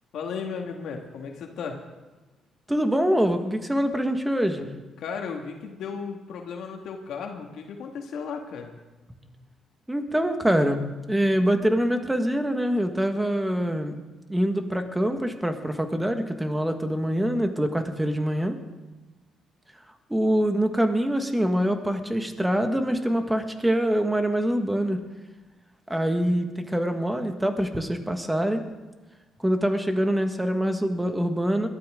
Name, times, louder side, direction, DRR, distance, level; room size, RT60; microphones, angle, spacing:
voice 1, 0.1-1.8 5.0-8.8, left 5 dB, 75° left, 2 dB, 2.0 m, -35 dB
voice 2, 2.7-4.7 9.9-10.8 11.1-13.9 14.3-18.6 20.1-25.0 25.9-28.6 29.4-31.7, equal, 10° right, 6 dB, 1.6 m, -24 dB
21.5 x 12.5 x 3.8 m, 1.2 s
cardioid pair, 90°, 0 cm